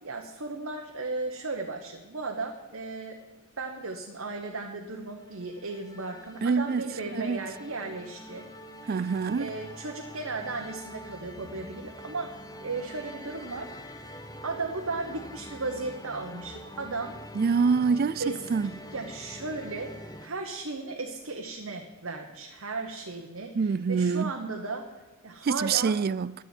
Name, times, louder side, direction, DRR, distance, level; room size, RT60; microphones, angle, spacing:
voice 1, 0.0-3.2 3.6-8.5 8.8-13.7 14.4-17.1 18.2-18.5 18.9-19.9 20.2-24.9 25.2-26.0, right 3 dB, 65° right, 1.2 m, -36 dB
sound 1, 4.9-20.3, left 1 dB, 15° left, 0.8 m, -45 dB
voice 2, 6.4-6.8 7.2-7.4 8.9-9.5 17.3-18.2 18.5-18.7 23.5-24.3 25.4-26.3, right 5 dB, 45° right, 0.3 m, -25 dB
11.0 x 7.2 x 9.6 m
head